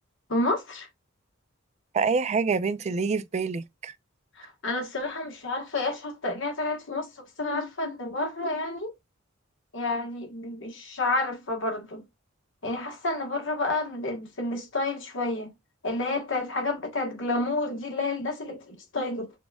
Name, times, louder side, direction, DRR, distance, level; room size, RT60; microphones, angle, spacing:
voice 1, 0.3-0.9 4.4-7.1 7.4-8.9 9.7-12.0 12.6-15.5 15.8-19.3, left 2 dB, 65° left, 1.4 m, -30 dB
voice 2, 1.9-3.9, right 5 dB, 35° right, 0.3 m, -26 dB
6.0 x 2.4 x 2.2 m
head